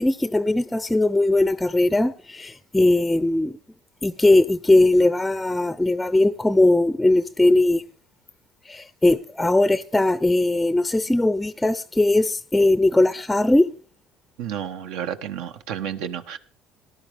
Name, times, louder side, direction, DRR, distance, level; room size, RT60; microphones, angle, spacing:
voice 1, 0.0-3.5 4.0-7.8 8.7-13.7, left 2 dB, 10° left, 0.5 m, -19 dB
voice 2, 14.4-16.4, right 9 dB, 85° right, 1.2 m, -31 dB
19.0 x 11.5 x 3.5 m
cardioid pair, 110°, 0 cm